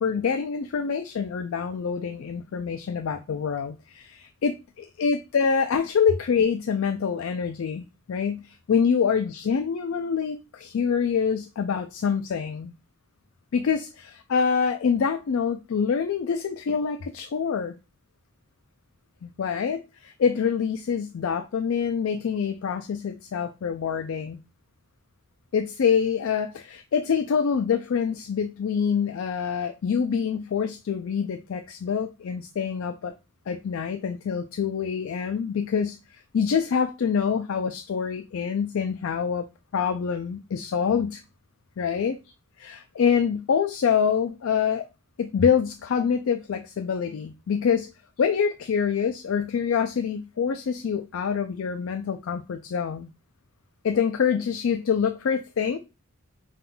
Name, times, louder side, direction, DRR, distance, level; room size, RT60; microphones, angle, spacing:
voice 1, 0.0-12.7 13.5-13.9 14.3-17.8 19.2-24.4 25.5-33.1 33.5-39.4 39.7-41.2 41.8-42.2 42.6-44.9 45.2-47.9 48.2-53.1 53.8-55.8, left 6 dB, 65° left, 0.3 m, -26 dB
5.4 x 3.8 x 2.2 m
head